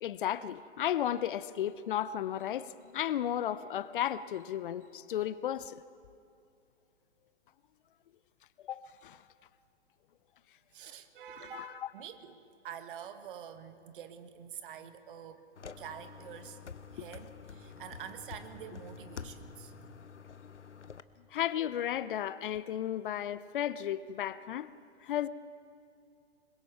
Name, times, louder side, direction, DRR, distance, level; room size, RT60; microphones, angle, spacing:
voice 1, 0.0-5.8 8.6-9.2 11.5-11.7 21.3-24.7 25.0-25.3, left 11 dB, 50° left, 0.7 m, -34 dB
voice 2, 10.7-15.4 15.8-16.6 16.9-20.1, right 8 dB, 50° right, 1.6 m, -47 dB
sound 1, 15.6-21.0, left 6 dB, 90° left, 0.9 m, -48 dB
26.0 x 22.0 x 4.7 m
figure-of-eight pair, 120°, 34 cm